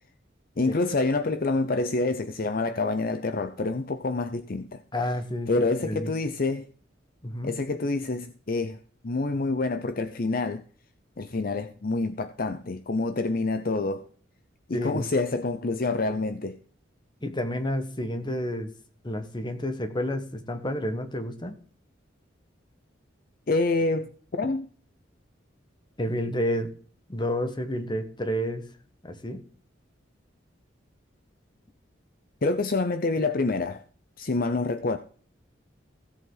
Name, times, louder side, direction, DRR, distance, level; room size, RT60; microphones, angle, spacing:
voice 1, 0.6-4.8 5.5-6.7 7.4-8.8 9.0-10.6 11.2-14.1 14.7-16.6 23.5-24.7 32.4-33.8 34.2-35.0, left 3 dB, 50° left, 0.7 m, -27 dB
voice 2, 4.9-6.1 7.2-7.5 14.7-15.1 17.2-18.7 19.0-21.6 26.0-26.7 27.1-28.7 29.0-29.4, equal, 25° left, 1.4 m, -30 dB
16.5 x 7.8 x 4.0 m
head